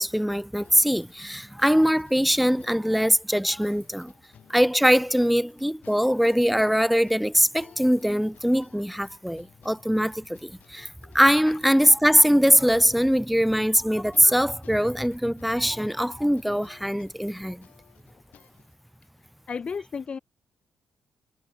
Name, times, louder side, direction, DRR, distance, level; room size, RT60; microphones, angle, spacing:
voice 1, 0.0-4.1 4.5-10.9 11.1-17.6, equal, ahead, 0.4 m, -22 dB
sound 1, 0.6-18.7, left 10 dB, 70° left, 6.2 m, -57 dB
voice 2, 19.5-20.2, left 5 dB, 40° left, 4.4 m, -34 dB
cardioid pair, 95°, 3 cm